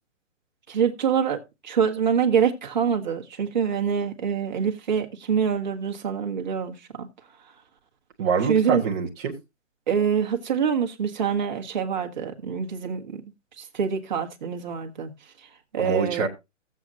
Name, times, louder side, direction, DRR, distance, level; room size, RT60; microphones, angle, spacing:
voice 1, 0.7-7.1 8.5-8.8 9.9-13.2 13.6-15.1 15.7-16.3, right 7 dB, 35° right, 1.6 m, -25 dB
voice 2, 8.2-9.3 15.8-16.3, right 5 dB, 15° right, 1.2 m, -25 dB
16.5 x 7.7 x 2.7 m
hypercardioid pair, 165°, 38 cm